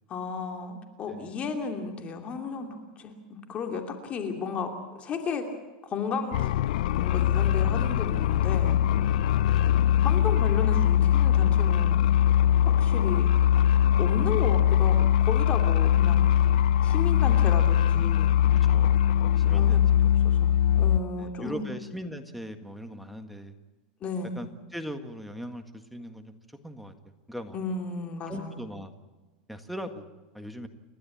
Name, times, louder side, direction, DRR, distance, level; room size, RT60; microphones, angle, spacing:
voice 1, 0.1-5.5 5.8-6.5 6.8-8.8 10.0-12.1 12.6-13.3 14.0-16.3 16.8-18.4 19.4-21.7 24.0-24.4 27.5-28.6, left 5 dB, 25° left, 4 dB, 2.8 m, -34 dB
sound 1, 6.3-21.0, left 10 dB, 70° left, 0.6 m, -22 dB
voice 2, 18.7-19.8 21.2-23.5 24.4-26.3 26.6-26.9 27.3-27.6 28.3-28.9 29.5-30.1 30.3-30.7, equal, ahead, 6 dB, 1.8 m, -39 dB
30.0 x 12.5 x 8.6 m, 1.2 s
supercardioid pair, 145°, 5 cm